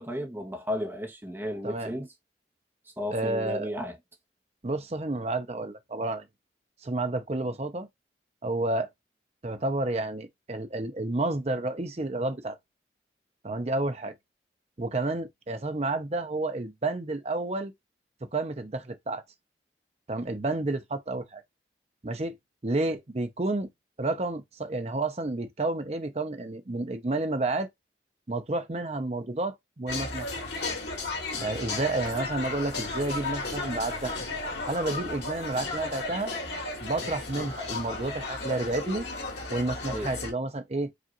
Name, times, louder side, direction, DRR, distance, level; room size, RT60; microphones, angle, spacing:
voice 1, 0.0-2.1 3.0-4.0 39.9-40.1, equal, 10° right, 0.9 m, -33 dB
voice 2, 1.6-2.0 3.1-3.7 4.6-6.3 6.8-7.9 8.4-8.9 9.4-12.6 13.4-14.1 14.8-17.7 18.3-19.2 20.1-21.4 22.0-22.4 22.6-23.7 24.0-27.7 28.3-30.5 31.4-34.1 34.7-36.3 36.8-39.1 39.5-40.9, right 2 dB, 35° right, 0.6 m, -30 dB
sound 1, 29.9-40.3, left 3 dB, 75° left, 2.0 m, -34 dB
4.9 x 2.5 x 2.9 m
head